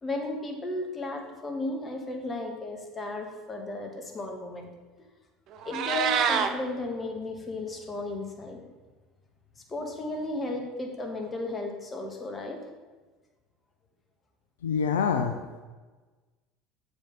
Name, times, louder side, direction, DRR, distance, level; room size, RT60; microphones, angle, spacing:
voice 1, 0.0-4.7 5.6-8.6 9.7-12.6, left 2 dB, 25° left, 2 dB, 1.5 m, -34 dB
Meow, 5.5-6.5, right 8 dB, 50° right, 0.6 m, -26 dB
voice 2, 14.6-15.6, left 6 dB, 70° left, 6 dB, 0.4 m, -26 dB
7.3 x 5.2 x 5.2 m, 1.3 s
figure-of-eight pair, 70°, 0 cm